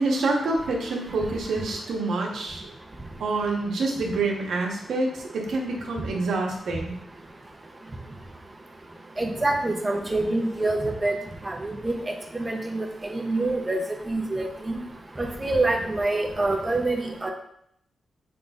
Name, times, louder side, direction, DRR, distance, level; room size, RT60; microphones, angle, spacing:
voice 1, 0.0-2.7 3.2-7.0, right 3 dB, 85° right, 0 dB, 0.8 m, -27 dB
voice 2, 9.2-11.2 11.5-12.0 12.4-13.8 14.1-14.5 15.2-17.3, right 2 dB, 20° right, 3 dB, 0.5 m, -26 dB
5.0 x 3.8 x 2.3 m, 0.71 s
wide cardioid pair, 145°, 0 cm